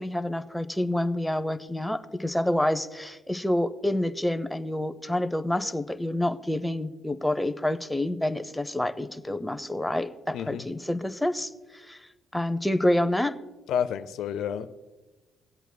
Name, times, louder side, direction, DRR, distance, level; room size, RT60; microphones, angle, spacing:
voice 1, 0.0-12.0 12.3-13.4, left 1 dB, 5° left, 10 dB, 0.6 m, -28 dB
voice 2, 10.3-10.6 13.7-14.7, left 8 dB, 70° left, 11 dB, 0.4 m, -29 dB
23.5 x 8.0 x 2.2 m, 1.2 s
hypercardioid pair, 60°, 0 cm